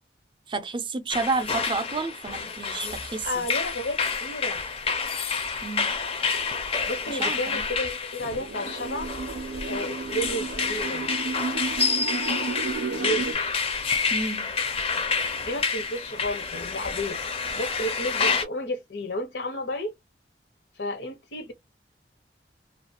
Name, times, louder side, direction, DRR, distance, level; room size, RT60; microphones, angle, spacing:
voice 1, 0.5-3.4 5.6-5.9 7.1-7.6 14.1-14.5, right 3 dB, 30° right, 0.5 m, -30 dB
sound 1, 1.1-18.4, left 5 dB, 35° left, 0.5 m, -29 dB
voice 2, 3.2-4.6 6.9-9.1 9.7-11.1 12.9-13.6 15.4-17.2 17.5-19.9 20.8-21.5, left 1 dB, 85° left, 0.9 m, -32 dB
Hell's Oscilator, 8.2-13.3, right 4 dB, 90° right, 0.5 m, -33 dB
2.4 x 2.3 x 2.6 m
head